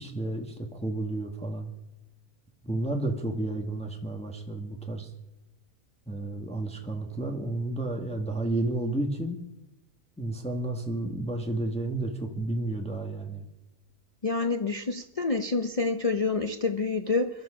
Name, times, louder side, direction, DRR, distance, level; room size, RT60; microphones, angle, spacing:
voice 1, 0.0-1.7 2.6-5.1 6.1-9.4 10.2-13.5, right 2 dB, 5° left, 3 dB, 1.4 m, -31 dB
voice 2, 14.2-17.3, left 3 dB, 40° left, 7 dB, 0.5 m, -27 dB
22.5 x 12.0 x 5.0 m, 0.93 s
omnidirectional pair, 1.6 m